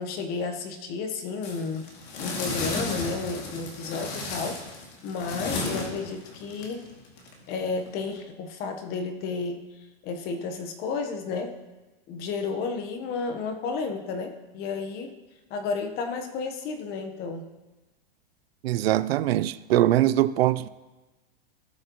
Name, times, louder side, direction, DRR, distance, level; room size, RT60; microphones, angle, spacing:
voice 1, 0.0-1.8 2.2-4.7 5.0-6.9 7.5-9.7 10.0-11.5 12.1-15.2 15.5-17.5, left 4 dB, 30° left, 1.1 m, -32 dB
sound 1, 1.4-8.2, left 2 dB, 60° left, 2.5 m, -34 dB
voice 2, 18.6-20.7, right 14 dB, 80° right, 0.6 m, -22 dB
17.5 x 6.4 x 3.0 m
supercardioid pair, 155°, 30 cm